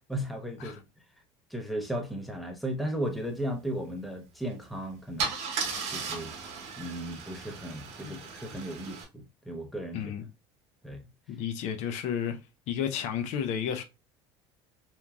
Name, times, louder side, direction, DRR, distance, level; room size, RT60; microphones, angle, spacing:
voice 1, 0.1-0.8 1.5-5.3 5.9-6.3 6.8-10.0 10.8-11.1, right 1 dB, ahead, 0.6 m, -35 dB
Car / Engine starting / Idling, 4.5-4.7 5.2-9.0, right 5 dB, 60° right, 0.9 m, -36 dB
voice 2, 9.9-10.3 11.3-12.4 12.7-13.8, left 8 dB, 65° left, 0.5 m, -32 dB
2.9 x 2.5 x 2.3 m
supercardioid pair, 105°, 13 cm